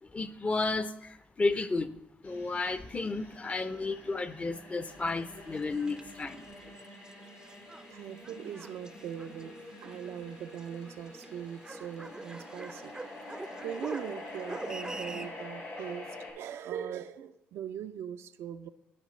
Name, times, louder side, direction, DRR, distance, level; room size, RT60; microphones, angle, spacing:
voice 1, 0.1-1.9 2.2-6.5, left 3 dB, 30° left, 12 dB, 0.6 m, -32 dB
sound 1, 2.2-16.3, left 2 dB, 75° left, 3.0 m, -47 dB
sound 2, 4.9-15.3, right 2 dB, 15° right, 0.4 m, -46 dB
voice 2, 7.9-12.9 13.3-18.7, right 9 dB, 70° right, 10 dB, 0.4 m, -41 dB
13.5 x 4.9 x 3.1 m, 0.83 s
supercardioid pair, 60°, 5 cm